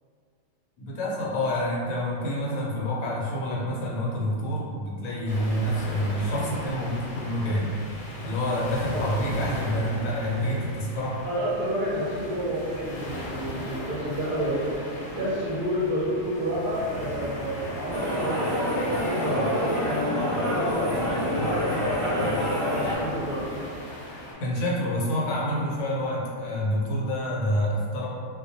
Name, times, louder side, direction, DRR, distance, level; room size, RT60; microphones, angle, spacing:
voice 1, 0.8-7.7 8.2-11.2 24.4-28.1, equal, 85° left, -4 dB, 1.0 m, -27 dB
sound 1, 5.3-24.3, equal, 60° left, 0.8 m, -38 dB
voice 2, 11.2-14.7 15.1-20.8 21.3-23.5, equal, 55° right, -10 dB, 0.6 m, -30 dB
sound 2, 17.9-23.0, equal, 45° left, 0.4 m, -27 dB
2.2 x 2.2 x 2.7 m, 2.1 s
omnidirectional pair, 1.4 m